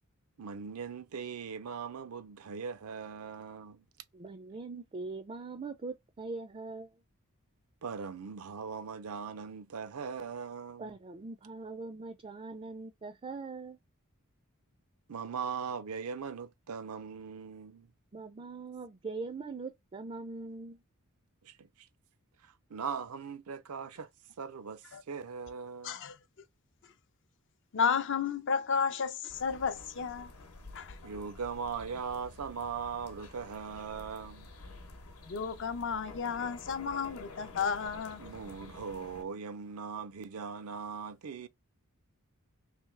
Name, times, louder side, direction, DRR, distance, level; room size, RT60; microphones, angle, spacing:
voice 1, 0.4-3.8 7.8-11.0 15.1-17.9 21.4-21.9 22.4-24.1 24.4-26.0 31.0-34.5 38.2-41.5, right 6 dB, 80° right, 0.5 m, -40 dB
voice 2, 4.1-6.9 10.8-13.8 18.1-20.8, right 3 dB, 25° right, 0.4 m, -42 dB
voice 3, 25.8-26.2 27.7-30.3 30.7-31.0 35.3-38.2, left 6 dB, 60° left, 0.5 m, -32 dB
sound 1, 29.3-39.2, left 2 dB, 80° left, 1.0 m, -50 dB
3.4 x 3.0 x 3.3 m
head